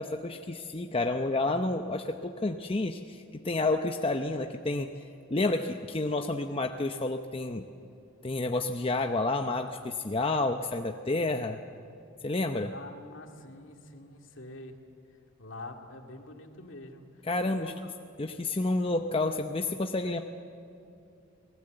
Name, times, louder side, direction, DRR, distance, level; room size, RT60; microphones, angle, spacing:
voice 1, 0.0-4.9 5.3-7.7 8.2-11.6 12.2-12.7 17.3-17.7 18.2-20.2, left 2 dB, 25° left, 5 dB, 0.7 m, -30 dB
voice 2, 12.6-14.8 15.1-17.9, left 2 dB, 70° left, 3 dB, 2.3 m, -46 dB
29.5 x 19.0 x 7.9 m, 2.6 s
head